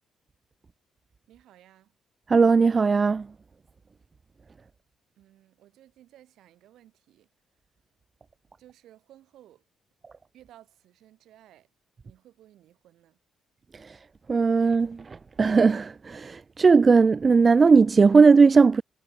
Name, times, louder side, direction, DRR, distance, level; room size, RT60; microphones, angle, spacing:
voice 1, 1.3-1.9 5.2-7.3 8.6-9.6 10.3-11.7 12.0-13.2, right 13 dB, 80° right, 7.5 m, -56 dB
voice 2, 2.3-3.3 13.7-14.0 14.3-18.8, right 4 dB, 35° right, 0.4 m, -18 dB
cardioid pair, 90°, 0 cm